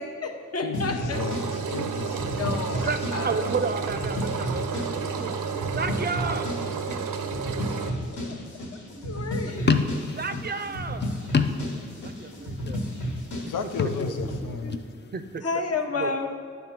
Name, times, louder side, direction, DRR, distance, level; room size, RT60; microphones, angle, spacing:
voice 1, 0.0-1.2 2.4-3.5 9.0-9.8 14.0-14.1 14.6-14.7 15.4-16.3, left 3 dB, 50° left, 4 dB, 0.8 m, -31 dB
voice 2, 0.6-2.9 11.8-11.9 12.2-12.3 13.3-14.7, left 5 dB, 90° left, 8 dB, 0.6 m, -34 dB
sound 1, 0.7-14.4, equal, 75° left, 1.5 m, -33 dB
Engine, 1.1-7.9, right 5 dB, 85° right, 0.6 m, -31 dB
voice 3, 2.7-5.4 5.7-6.5 9.4-9.5 10.0-11.0 12.0-12.8 15.1-15.4 16.0-16.1, right 4 dB, 30° right, 10 dB, 0.4 m, -32 dB
sound 2, 9.6-12.2 12.5-13.1 13.6-14.9, left 5 dB, 35° left, 0.5 m, -27 dB
8.9 x 3.5 x 5.8 m, 2.3 s
cardioid pair, 60°, 31 cm